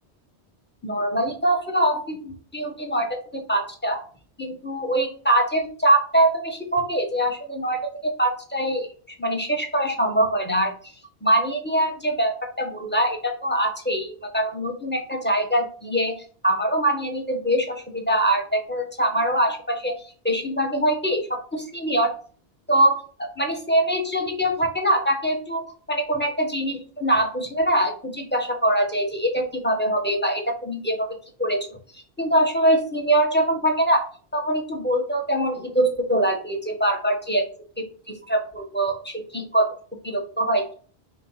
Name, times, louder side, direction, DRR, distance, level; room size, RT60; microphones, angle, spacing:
voice 1, 0.8-4.0 4.4-8.9 9.2-10.7 11.2-16.1 16.4-22.1 22.7-31.7 31.9-34.0 34.3-37.5 37.8-39.7 40.0-40.7, right 1 dB, 10° left, 2 dB, 1.2 m, -23 dB
5.4 x 3.6 x 5.6 m, 0.42 s
omnidirectional pair, 1.1 m